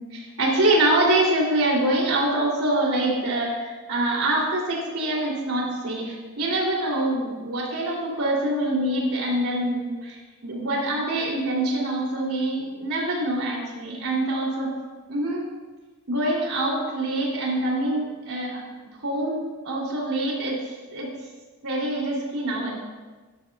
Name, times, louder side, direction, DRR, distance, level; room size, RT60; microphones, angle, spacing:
voice 1, 0.1-14.7 15.1-15.5 16.1-18.6 19.0-20.6 20.9-21.1 21.6-22.8, right 1 dB, 85° right, -3 dB, 3.0 m, -25 dB
13.0 x 12.0 x 2.4 m, 1.3 s
head